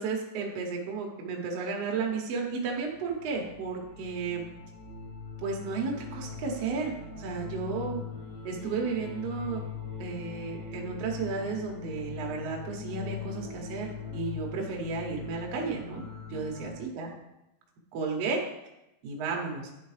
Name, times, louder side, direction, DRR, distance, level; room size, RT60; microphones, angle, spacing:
voice 1, 0.0-4.5 5.4-8.0 8.4-9.6 10.0-16.0 16.3-17.1 17.9-18.4 19.0-19.7, right 4 dB, 80° right, -1 dB, 1.4 m, -33 dB
sound 1, 2.6-16.7, left 6 dB, 85° left, 4.4 m, -41 dB
10.5 x 3.9 x 3.2 m, 0.90 s
omnidirectional pair, 4.6 m